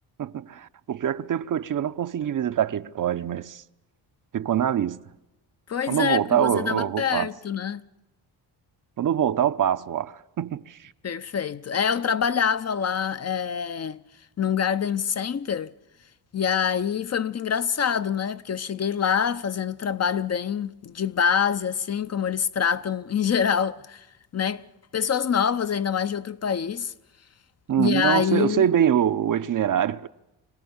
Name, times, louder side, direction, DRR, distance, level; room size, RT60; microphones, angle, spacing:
voice 1, 0.2-3.6 4.3-5.0 5.9-7.3 9.0-10.9 27.7-30.1, right 9 dB, 50° right, 0.8 m, -24 dB
voice 2, 5.7-7.8 11.0-14.0 14.4-15.7 16.3-24.1 24.3-24.6 24.9-26.9 27.8-28.7, left 7 dB, 40° left, 0.8 m, -25 dB
26.0 x 17.5 x 8.7 m
cardioid pair, 85°, 40 cm